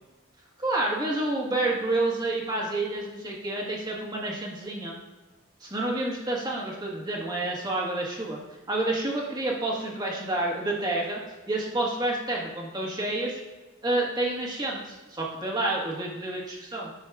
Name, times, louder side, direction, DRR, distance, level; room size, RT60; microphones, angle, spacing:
voice 1, 0.6-4.9 5.6-8.4 8.7-11.2 11.5-13.4 13.8-16.9, right 2 dB, 20° right, -2 dB, 1.5 m, -29 dB
10.5 x 6.3 x 2.4 m, 1.2 s
head